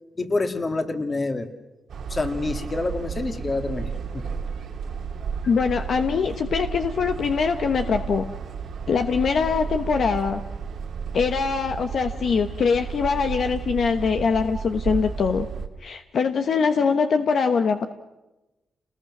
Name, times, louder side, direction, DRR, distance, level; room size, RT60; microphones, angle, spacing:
voice 1, 0.2-1.5 2.1-4.2, left 3 dB, 35° left, 7 dB, 2.3 m, -27 dB
sound 1, 1.9-15.7, right 6 dB, 75° right, 2.0 m, -33 dB
voice 2, 5.5-8.3 8.9-10.4 11.1-15.5 15.8-17.9, left 5 dB, 65° left, 7 dB, 1.1 m, -23 dB
29.0 x 20.5 x 6.2 m, 1.0 s
cardioid pair, 75°, 0 cm